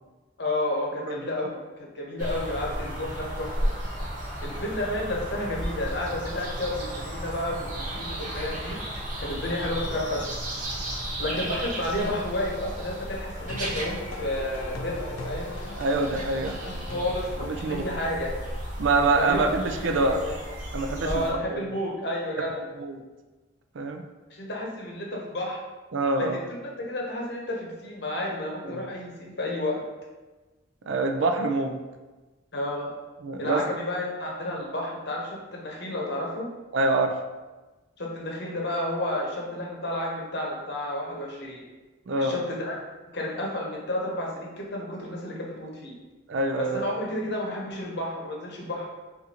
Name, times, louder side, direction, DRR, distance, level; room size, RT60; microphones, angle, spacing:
voice 1, 0.4-3.7 4.4-8.8 9.2-10.3 11.2-15.5 16.5-18.4 19.1-19.4 19.8-20.4 21.0-22.6 24.3-25.6 26.2-29.8 32.5-32.9 33.4-36.5 38.0-41.6 42.2-42.8 43.1-45.9 46.6-48.9, left 1 dB, 55° left, -1 dB, 0.9 m, -31 dB
sound 1, 2.2-21.3, right 1 dB, 40° right, 0.9 m, -34 dB
sound 2, 13.3-18.5, left 1 dB, 90° left, 0.5 m, -40 dB
voice 2, 15.8-16.6 17.4-17.9 18.8-20.2 20.7-21.2 21.5-21.7 22.8-23.0 23.7-24.0 25.9-26.4 28.7-28.8 30.9-31.8 33.2-33.6 36.7-37.2 42.1-42.4 46.3-46.8, right 3 dB, 65° right, 5 dB, 0.4 m, -25 dB
5.5 x 2.5 x 2.8 m, 1.2 s
head